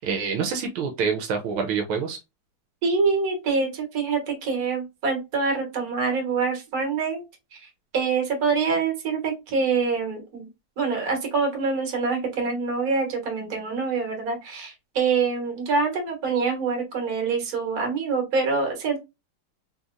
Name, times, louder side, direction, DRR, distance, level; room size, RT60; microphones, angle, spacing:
voice 1, 0.0-2.2, right 6 dB, 80° right, 4 dB, 1.4 m, -26 dB
voice 2, 2.8-7.2 7.5-10.5 10.8-19.0, right 4 dB, 50° right, 2 dB, 1.5 m, -25 dB
3.7 x 2.7 x 2.4 m, 0.24 s
omnidirectional pair, 2.3 m